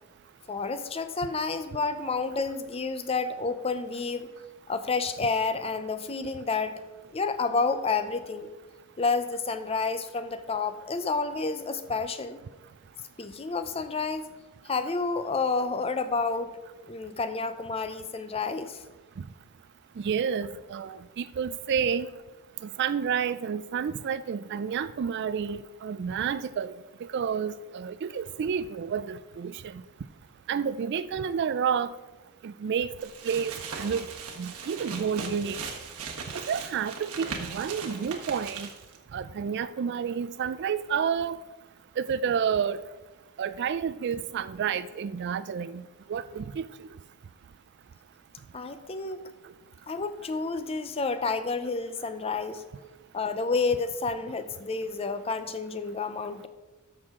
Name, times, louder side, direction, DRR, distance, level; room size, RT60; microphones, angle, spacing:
voice 1, 0.5-4.3 4.7-6.8 7.1-8.5 9.0-12.4 13.2-14.3 14.6-16.5 16.9-18.8 48.5-49.2 49.9-52.6 53.1-56.5, left 4 dB, 25° left, 11 dB, 0.5 m, -30 dB
voice 2, 20.0-22.1 22.6-26.7 27.1-29.8 30.5-31.9 32.4-34.1 34.4-35.6 36.3-38.7 39.1-41.4 42.0-42.8 43.4-45.8 46.1-46.6, right 7 dB, 50° right, 15 dB, 0.3 m, -30 dB
sound 1, 33.0-39.0, right 5 dB, 85° right, 1.4 m, -39 dB
13.5 x 6.2 x 3.7 m, 1.2 s
head